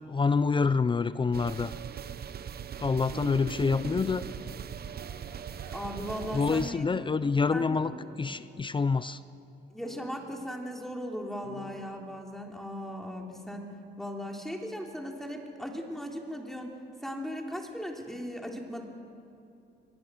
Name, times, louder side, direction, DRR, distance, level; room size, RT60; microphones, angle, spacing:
voice 1, 0.1-1.7 2.8-4.3 6.3-7.9 8.2-9.2, left 4 dB, 25° left, 15 dB, 0.5 m, -27 dB
sound 1, 1.3-6.7, right 8 dB, 50° right, 0.9 m, -40 dB
sound 2, 3.0-4.4 5.0-5.8, right 2 dB, 85° right, 5.6 m, -42 dB
voice 2, 5.7-7.0 7.5-7.8 9.7-13.7 14.0-18.8, equal, ahead, 1 dB, 3.3 m, -38 dB
sound 3, 6.1-12.9, equal, 75° left, 5.5 m, -51 dB
24.0 x 20.0 x 6.3 m, 2.6 s
cardioid pair, 90°, 20 cm